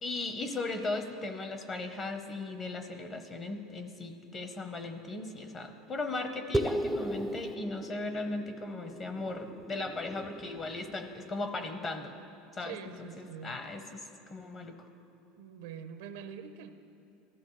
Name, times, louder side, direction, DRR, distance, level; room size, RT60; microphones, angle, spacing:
voice 1, 0.0-12.1 12.5-14.0 14.3-14.8, left 3 dB, 30° left, 7 dB, 0.9 m, -37 dB
sound 1, 6.5-11.3, right 1 dB, 5° right, 0.3 m, -36 dB
voice 2, 12.6-13.5 15.4-16.7, right 8 dB, 85° right, 9 dB, 0.6 m, -44 dB
17.5 x 13.5 x 3.2 m, 2.8 s
supercardioid pair, 135°, 0 cm